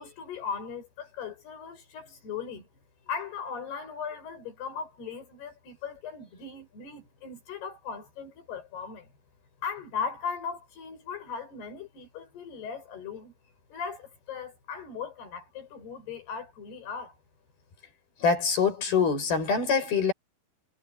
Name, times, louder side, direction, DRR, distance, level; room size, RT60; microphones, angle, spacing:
voice 1, 0.0-2.7 3.1-9.1 9.6-13.3 13.7-17.2, left 6 dB, 85° left, 8.8 m, -38 dB
voice 2, 18.2-20.1, left 5 dB, 70° left, 8.3 m, -24 dB
omnidirectional pair, 4.5 m